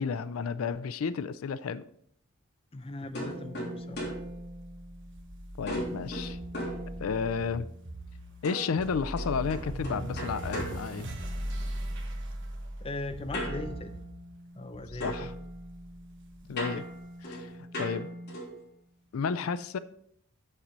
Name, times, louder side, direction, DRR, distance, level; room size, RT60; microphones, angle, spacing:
voice 1, 0.0-1.9 5.6-6.4 7.0-7.7 8.4-11.1 14.9-15.3 16.5-16.8 17.2-18.1 19.1-19.8, left 5 dB, 85° left, 15 dB, 0.4 m, -32 dB
voice 2, 2.7-4.0 12.8-14.0 14.5-15.3 16.5-16.7, left 2 dB, 30° left, 9 dB, 0.6 m, -39 dB
sound 1, 3.1-5.2 5.7-7.5 8.4-11.7 13.3-14.7 15.0-18.7, equal, 55° left, 3.2 m, -39 dB
sound 2, 3.8-17.0, right 1 dB, 60° right, 1.2 m, -40 dB
7.4 x 7.2 x 4.0 m, 0.65 s
head